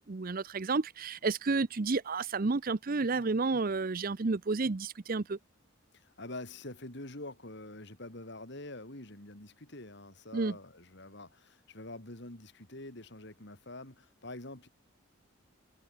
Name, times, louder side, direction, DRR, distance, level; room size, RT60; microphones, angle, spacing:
voice 1, 0.0-5.4 10.3-10.6, right 3 dB, 40° right, 0.6 m, -31 dB
voice 2, 5.9-14.7, left 2 dB, 55° left, 3.4 m, -46 dB
head